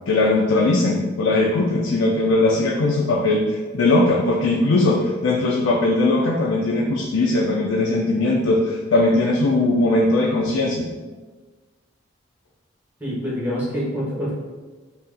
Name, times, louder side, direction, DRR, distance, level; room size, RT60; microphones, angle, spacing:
voice 1, 0.1-10.9, left 2 dB, 80° left, -1 dB, 0.4 m, -19 dB
voice 2, 13.0-14.3, equal, 10° right, -7 dB, 0.9 m, -26 dB
5.1 x 2.4 x 2.5 m, 1.3 s
head